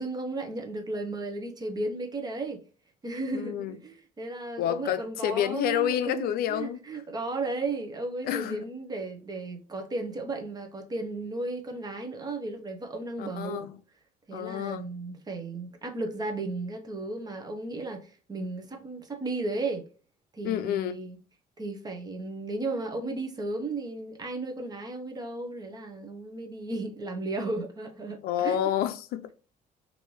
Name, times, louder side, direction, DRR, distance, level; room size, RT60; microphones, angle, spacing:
voice 1, 0.0-2.6 3.0-13.7 14.3-19.9 20.3-21.2 21.6-28.7, right 2 dB, 25° right, 0.8 m, -34 dB
voice 2, 3.3-3.8 4.6-6.8 8.2-8.6 13.2-13.8 14.3-14.9 20.4-21.0 28.2-29.3, left 11 dB, 75° left, 0.4 m, -29 dB
3.2 x 2.6 x 3.0 m
cardioid pair, 100°, 16 cm